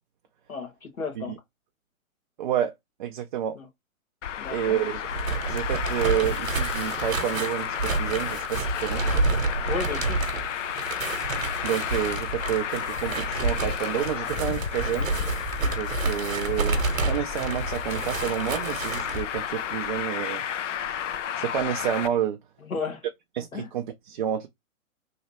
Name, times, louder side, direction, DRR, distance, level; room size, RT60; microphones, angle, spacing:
voice 1, 0.5-1.3 3.5-3.6 4.4-4.8 9.7-10.2 22.6-23.0 23.5-23.7, left 5 dB, 80° left, 1.3 m, -33 dB
voice 2, 2.4-2.7 3.0-3.6 4.5-5.0 5.5-9.1 11.6-15.1 15.7-20.4 21.4-22.4 23.3-24.5, right 10 dB, 40° right, 0.4 m, -29 dB
Traffic noise roadway noise, 4.2-22.1, left 9 dB, 60° left, 0.5 m, -32 dB
sound 1, 5.0-19.2, right 3 dB, 75° right, 1.0 m, -29 dB
3.1 x 2.8 x 2.8 m
figure-of-eight pair, 125°, 41 cm